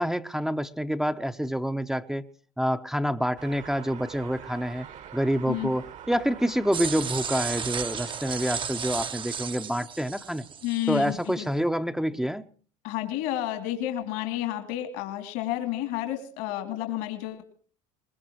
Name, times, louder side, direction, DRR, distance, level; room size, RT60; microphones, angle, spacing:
voice 1, 0.0-2.2 2.6-4.9 5.1-10.4 10.9-12.5, equal, 5° right, 6 dB, 0.7 m, -27 dB
sound 1, 3.4-8.7, right 9 dB, 50° right, 1.3 m, -44 dB
sound 2, 6.7-11.2, right 7 dB, 30° right, 0.8 m, -34 dB
voice 2, 10.6-11.5 12.8-17.4, left 13 dB, 75° left, 7 dB, 2.7 m, -31 dB
23.0 x 21.0 x 3.0 m, 0.42 s
supercardioid pair, 90°, 16 cm